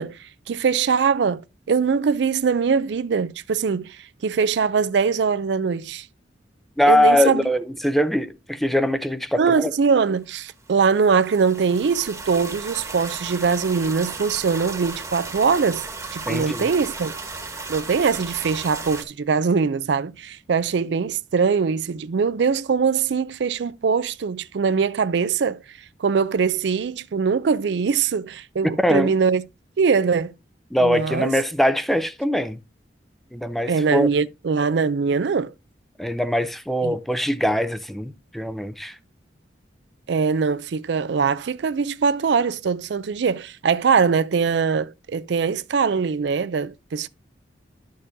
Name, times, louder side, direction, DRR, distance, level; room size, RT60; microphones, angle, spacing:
voice 1, 0.0-1.4 1.7-6.1 6.9-7.4 9.4-17.1 17.7-25.6 26.0-29.4 29.8-30.3 30.8-31.3 33.7-35.5 36.8-36.9 40.1-47.1, right 5 dB, 65° right, 0.4 m, -22 dB
voice 2, 6.8-9.7 16.3-16.7 28.8-29.1 30.7-32.6 33.3-34.1 36.0-39.0, equal, ahead, 0.4 m, -22 dB
sound 1, 10.7-19.0, right 3 dB, 15° right, 1.2 m, -35 dB
11.5 x 6.5 x 2.6 m
head